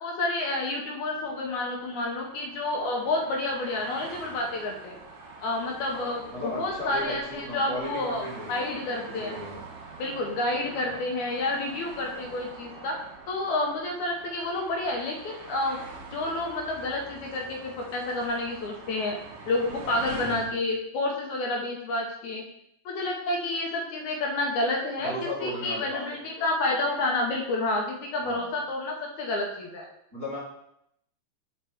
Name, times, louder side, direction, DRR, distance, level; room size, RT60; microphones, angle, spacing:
voice 1, 0.0-5.0 5.4-8.2 8.5-9.4 10.0-12.9 13.3-15.8 16.1-19.2 19.5-22.4 22.9-29.9, left 2 dB, 75° left, 1 dB, 2.3 m, -29 dB
sound 1, 1.1-20.5, right 3 dB, 70° right, 2.8 m, -45 dB
voice 2, 5.9-8.6 9.0-9.6 10.8-11.0 25.0-26.5 28.2-28.5 30.1-30.4, left 1 dB, 20° right, -9 dB, 2.5 m, -36 dB
7.4 x 4.9 x 3.5 m, 0.75 s
omnidirectional pair, 3.5 m